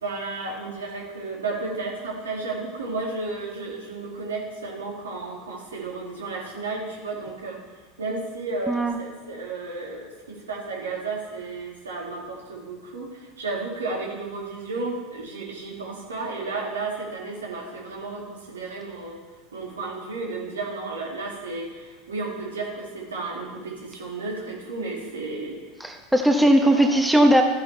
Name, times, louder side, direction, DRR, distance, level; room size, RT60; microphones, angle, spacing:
voice 1, 0.0-19.2 19.5-25.6 26.6-26.9, right 3 dB, 80° right, -2 dB, 2.4 m, -33 dB
voice 2, 25.8-27.4, right 1 dB, 5° right, 3 dB, 1.1 m, -18 dB
13.5 x 9.6 x 3.4 m, 1.2 s
hypercardioid pair, 80°, 0 cm